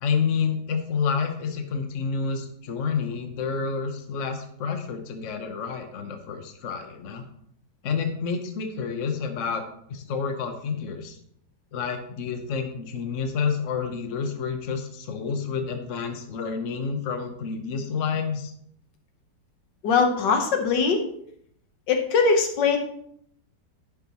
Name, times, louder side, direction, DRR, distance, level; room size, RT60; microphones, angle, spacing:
voice 1, 0.0-7.2 7.8-9.6 9.9-11.2 11.7-18.5, left 5 dB, 50° left, 6 dB, 1.2 m, -29 dB
voice 2, 19.8-21.1 21.9-22.8, left 5 dB, 85° left, 5 dB, 1.8 m, -21 dB
11.0 x 7.4 x 3.0 m, 0.68 s
omnidirectional pair, 1.9 m